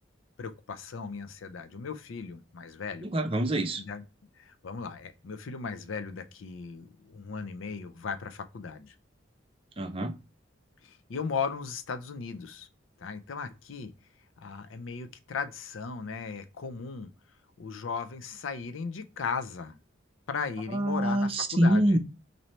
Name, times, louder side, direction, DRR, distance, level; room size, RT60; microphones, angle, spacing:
voice 1, 0.4-3.1 3.8-4.0 4.4-8.9 10.8-12.7 13.0-13.9 14.4-17.1 17.6-19.8 20.3-22.0, left 5 dB, 75° left, 0.5 m, -37 dB
voice 2, 3.0-3.8 9.8-10.2 20.7-22.0, right 1 dB, 25° right, 0.5 m, -25 dB
3.1 x 2.7 x 4.1 m
head